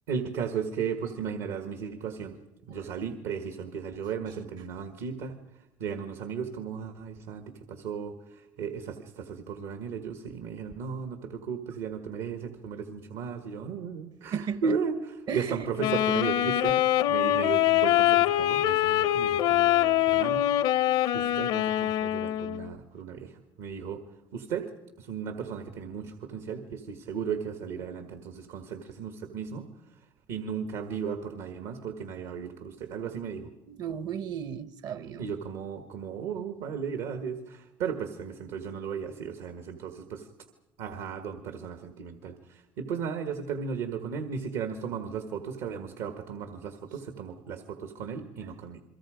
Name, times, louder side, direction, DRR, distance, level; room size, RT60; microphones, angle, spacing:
voice 1, 0.1-2.4 2.7-5.3 5.8-16.8 17.1-20.5 21.1-23.3 23.6-24.0 24.3-24.7 25.0-29.7 30.3-33.5 35.2-40.3 40.8-48.8, right 6 dB, 85° right, 1.7 m, -35 dB
voice 2, 14.3-14.8 15.3-15.7 33.7-35.3, right 8 dB, 55° right, 0.9 m, -35 dB
Wind instrument woodwind instrument, 15.8-22.7, left 13 dB, 75° left, 0.7 m, -24 dB
29.5 x 22.5 x 5.1 m
supercardioid pair, 95°, 8 cm